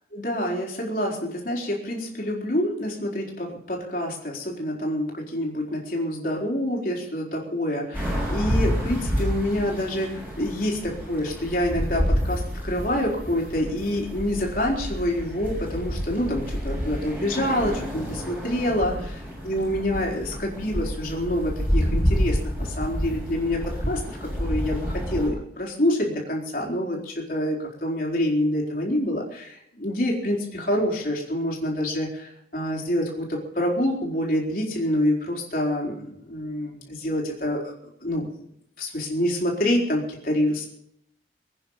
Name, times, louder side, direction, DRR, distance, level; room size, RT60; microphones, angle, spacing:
voice 1, 0.1-37.7 38.0-38.3 38.8-40.7, left 1 dB, 50° left, -1 dB, 4.3 m, -27 dB
sound 1, 7.9-25.3, equal, 10° right, 6.8 m, -29 dB
24.0 x 9.7 x 5.6 m, 0.73 s
head